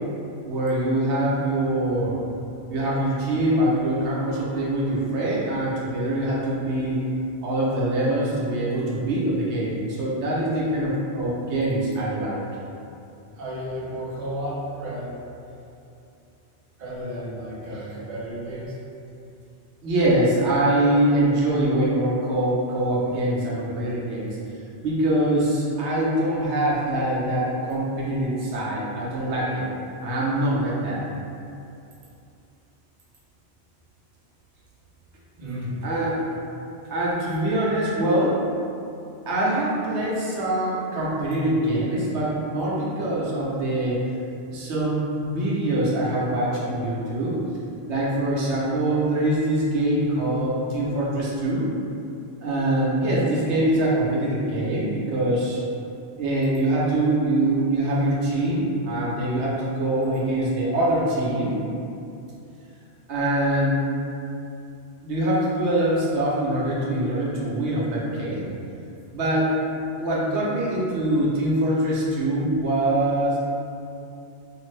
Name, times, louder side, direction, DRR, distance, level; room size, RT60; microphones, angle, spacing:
voice 1, 0.4-2.2 2.7-7.0 7.4-12.4 17.7-17.8 19.8-24.4 24.8-29.6 30.0-31.0 35.8-36.2 36.9-38.4 39.3-44.0 44.5-47.4 47.9-51.7 52.4-55.6 56.2-61.5 63.1-63.8 65.0-68.5 69.1-69.5 70.0-73.4, right 1 dB, 80° right, -6 dB, 1.0 m, -24 dB
voice 2, 13.4-15.2 16.8-18.8 35.4-35.7, equal, 50° right, -6 dB, 0.7 m, -33 dB
2.6 x 2.5 x 3.1 m, 2.7 s
omnidirectional pair, 1.1 m